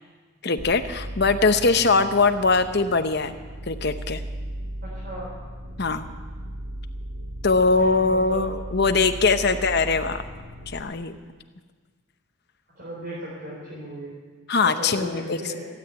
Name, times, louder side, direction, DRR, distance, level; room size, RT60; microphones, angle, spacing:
voice 1, 0.4-3.3 3.7-4.2 5.8-6.1 7.4-10.2 10.7-11.2 14.5-15.4, left 4 dB, 50° left, 9 dB, 0.8 m, -21 dB
sound 1, 0.6-10.8, right 1 dB, 60° right, 1.5 m, -37 dB
voice 2, 4.8-5.4 7.6-8.6 9.5-9.6 12.7-14.1 14.6-15.7, right 1 dB, 45° right, -7 dB, 4.2 m, -36 dB
16.0 x 8.9 x 9.2 m, 1.5 s
head